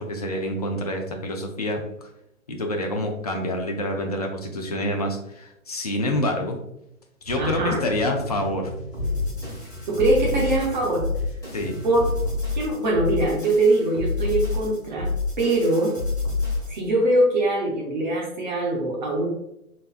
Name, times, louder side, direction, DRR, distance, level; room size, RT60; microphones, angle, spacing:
voice 1, 0.0-2.1 2.5-6.6 7.2-8.7 11.5-11.7, left 1 dB, 30° left, 3 dB, 0.4 m, -27 dB
sound 1, 7.2-12.8, left 1 dB, 45° left, 1.2 m, -37 dB
voice 2, 7.4-7.8 9.9-11.1 11.8-12.0 12.5-15.1 15.4-15.9 16.7-19.3, right 2 dB, 30° right, -2 dB, 0.7 m, -22 dB
sound 2, 8.9-16.9, left 3 dB, 10° left, 1.5 m, -28 dB
4.2 x 3.3 x 2.4 m, 0.82 s
figure-of-eight pair, 130°, 44 cm